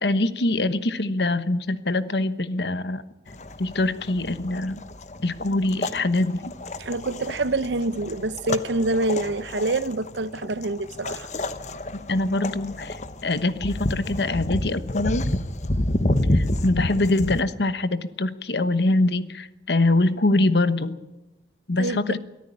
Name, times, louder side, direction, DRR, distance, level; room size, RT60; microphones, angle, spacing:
voice 1, 0.0-3.0 3.6-4.8 5.2-6.5 12.1-15.2 16.3-20.9 21.7-22.2, left 2 dB, 70° left, 1.2 m, -24 dB
sound 1, 3.3-17.4, left 1 dB, 40° left, 1.1 m, -29 dB
voice 2, 6.8-11.3 21.8-22.2, right 2 dB, 85° right, 0.8 m, -26 dB
23.0 x 14.0 x 10.0 m
head